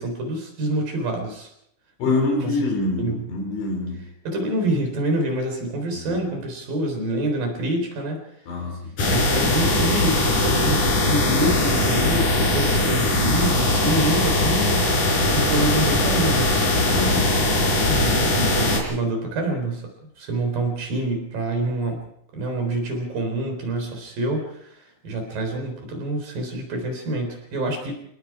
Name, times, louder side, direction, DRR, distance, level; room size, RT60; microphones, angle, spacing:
voice 1, 0.0-1.5 2.0-2.1 2.4-2.6 3.0-3.2 4.3-8.2 9.1-14.9 15.2-16.5 17.9-19.8 20.2-22.0 22.3-24.8 25.0-27.9, right 1 dB, 45° right, 4 dB, 5.3 m, -26 dB
voice 2, 2.0-4.0 8.5-8.9 16.9-17.4, left 2 dB, 65° left, 1 dB, 7.5 m, -25 dB
sound 1, 9.0-18.8, left 2 dB, 40° left, 5.8 m, -20 dB
27.0 x 19.5 x 4.9 m, 0.74 s
omnidirectional pair, 5.8 m